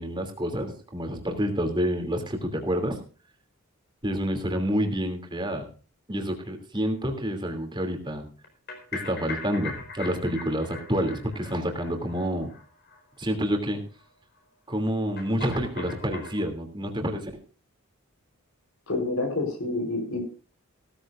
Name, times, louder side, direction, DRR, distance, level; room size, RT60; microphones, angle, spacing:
voice 1, 0.0-3.0 4.0-5.7 6.1-8.3 8.9-12.5 13.2-13.8 14.7-17.3, equal, 20° right, 4 dB, 2.9 m, -28 dB
sound 1, 8.4-13.0 13.2-13.4 13.6-13.7 14.0-14.1 15.2-16.5, left 4 dB, 50° left, 4.7 m, -40 dB
voice 2, 18.9-20.2, left 2 dB, 70° left, 3 dB, 4.3 m, -28 dB
17.0 x 14.0 x 2.6 m, 0.37 s
head